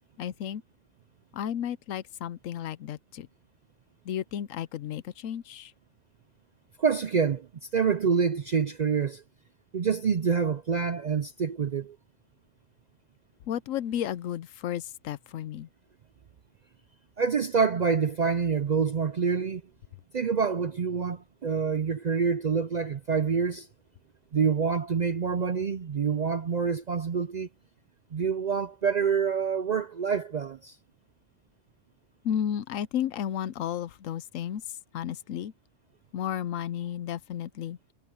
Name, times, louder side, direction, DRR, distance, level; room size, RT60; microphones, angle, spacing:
voice 1, 0.2-0.6 1.3-3.3 4.0-5.7 13.5-15.7 32.2-34.6 34.9-35.5 36.1-37.8, left 10 dB, 85° left, 1.1 m, -33 dB
voice 2, 6.8-9.2 9.7-12.0 17.2-19.6 20.1-23.7 24.3-27.5 28.1-30.8, right 6 dB, 55° right, 0.4 m, -27 dB
omnidirectional pair, 1.3 m